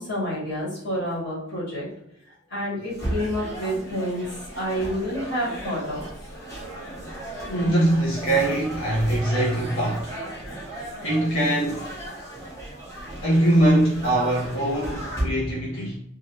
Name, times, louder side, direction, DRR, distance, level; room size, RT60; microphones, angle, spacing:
voice 1, 0.0-1.9 2.5-4.2 4.5-6.0 7.5-7.7, equal, 55° left, 1.4 m, -29 dB
sound 1, 2.9-15.2, right 1 dB, 15° left, 0.9 m, -35 dB
voice 2, 7.5-10.1 11.0-11.9 13.2-16.0, right 1 dB, 85° left, 0.9 m, -22 dB
2.8 x 2.4 x 3.0 m
head